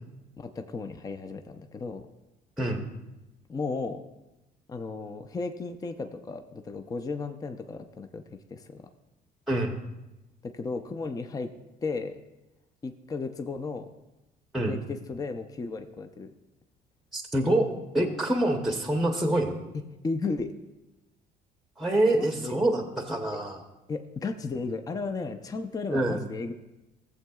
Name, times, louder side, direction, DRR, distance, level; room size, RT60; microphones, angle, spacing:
voice 1, 0.4-2.0 3.5-4.0 4.7-8.2 8.5-8.9 10.4-11.5 11.8-12.2 12.8-13.9 14.7-16.3 18.0-18.1 20.0-20.5 22.1-22.5 23.3-23.4 23.9-26.5, left 4 dB, 20° left, 7 dB, 0.5 m, -34 dB
voice 2, 9.5-9.8 14.5-14.7 17.1-17.7 17.9-19.6 21.8-23.6 25.9-26.2, right 1 dB, ahead, 3 dB, 0.8 m, -26 dB
15.5 x 7.5 x 2.3 m, 0.99 s
cardioid pair, 110°, 17 cm